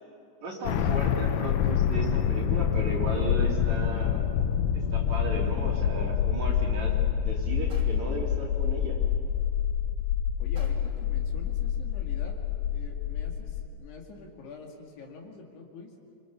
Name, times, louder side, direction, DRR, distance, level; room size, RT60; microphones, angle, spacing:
voice 1, 0.4-4.2 4.7-7.0 7.2-9.0, right 1 dB, 40° right, -2 dB, 3.8 m, -35 dB
sound 1, 0.7-13.7, left 8 dB, 80° left, 3.4 m, -27 dB
sound 2, 7.7-8.3 10.6-11.1, right 2 dB, 25° right, 3.5 m, -52 dB
voice 2, 10.4-12.4 12.7-15.9, left 4 dB, 65° left, 0 dB, 4.2 m, -46 dB
28.0 x 25.5 x 7.0 m, 2.6 s
omnidirectional pair, 5.4 m